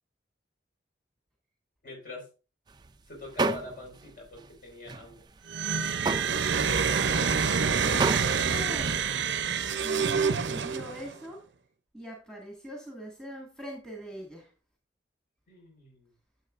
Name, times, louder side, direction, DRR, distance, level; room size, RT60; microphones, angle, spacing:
voice 1, 1.8-2.3 3.1-5.2 15.5-16.1, left 3 dB, 50° left, 0 dB, 4.9 m, -44 dB
sound 1, 2.7-2.9 3.3-4.1 4.4-4.5 4.9-9.5, right 3 dB, 25° right, 0.4 m, -33 dB
sound 2, 5.5-11.1, right 6 dB, 80° right, 0.6 m, -27 dB
voice 2, 8.5-9.0 9.6-11.4 11.9-14.5, equal, 5° left, -1 dB, 1.8 m, -42 dB
11.0 x 7.4 x 2.5 m, 0.32 s
head